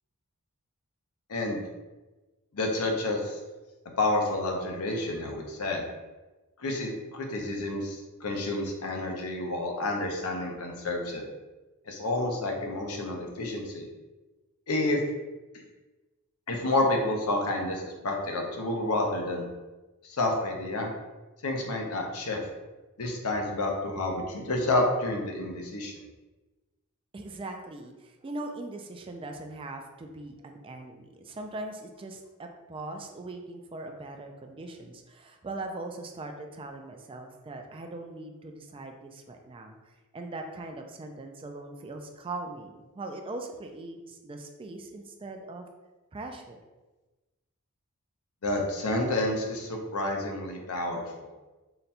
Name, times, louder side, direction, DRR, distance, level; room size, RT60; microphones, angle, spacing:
voice 1, 2.5-3.4 4.0-5.9 6.6-11.2 11.9-13.9 14.7-15.0 16.5-19.4 20.0-20.9 21.4-22.4 23.0-25.9 48.4-51.3, left 2 dB, 75° left, 1 dB, 0.7 m, -29 dB
voice 2, 27.1-45.7 46.1-46.6, right 2 dB, 25° right, 4 dB, 0.3 m, -40 dB
3.8 x 2.2 x 4.2 m, 1.2 s
head